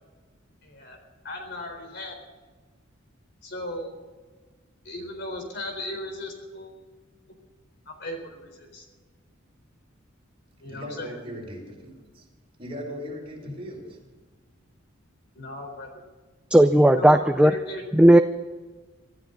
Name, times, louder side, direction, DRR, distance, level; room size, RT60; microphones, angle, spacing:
voice 1, 0.6-1.0 1.2-2.2 3.4-4.0 4.8-6.7 7.9-8.9 10.6-11.2 13.4-13.5 15.3-16.0 16.9-17.8, left 1 dB, 60° left, 4 dB, 4.2 m, -36 dB
voice 2, 10.7-12.3 12.6-14.0, equal, 30° right, -2 dB, 5.9 m, -38 dB
voice 3, 16.5-17.5 18.0-18.2, right 1 dB, 5° right, 8 dB, 0.4 m, -15 dB
24.5 x 14.0 x 4.0 m, 1.3 s
head